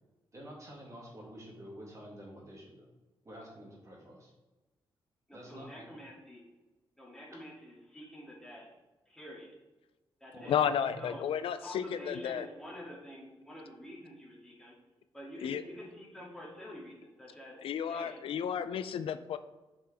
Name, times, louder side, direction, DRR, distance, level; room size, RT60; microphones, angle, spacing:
voice 1, 0.3-2.9 3.2-4.3 5.3-5.9 10.3-11.1, equal, 35° right, -3 dB, 2.3 m, -48 dB
voice 2, 5.3-6.5 7.0-8.7 9.1-9.5 10.2-10.6 11.0-11.3 11.6-14.7 15.1-17.5 17.9-18.2, left 1 dB, 5° left, -5 dB, 2.4 m, -48 dB
voice 3, 10.5-12.5 15.4-15.6 17.6-19.4, left 8 dB, 80° left, 12 dB, 0.4 m, -32 dB
7.5 x 5.2 x 3.4 m, 1.1 s
cardioid pair, 110°, 9 cm